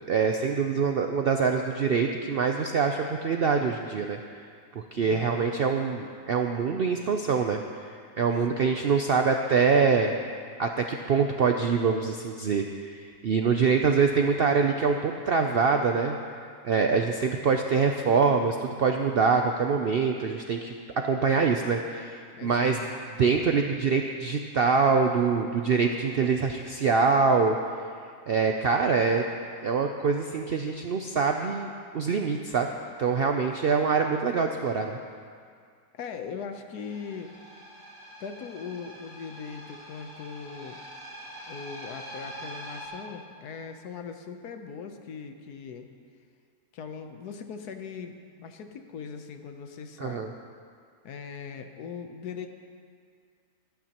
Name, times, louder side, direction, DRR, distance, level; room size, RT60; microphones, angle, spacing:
voice 1, 0.1-4.2 4.9-7.6 8.2-10.1 10.6-16.2 16.6-20.7 21.0-22.8 23.2-27.6 28.3-29.3 29.6-32.7 33.0-35.0 50.0-50.3, right 5 dB, 70° right, 4 dB, 0.5 m, -24 dB
voice 2, 5.0-5.6 8.5-8.7 22.3-22.8 35.9-37.3 38.2-40.8 41.5-45.9 46.7-50.3 51.0-52.5, left 6 dB, 80° left, 6 dB, 1.4 m, -40 dB
sound 1, 36.8-42.9, right 1 dB, 30° right, 3.5 m, -44 dB
23.0 x 9.3 x 2.9 m, 2.2 s
omnidirectional pair, 1.6 m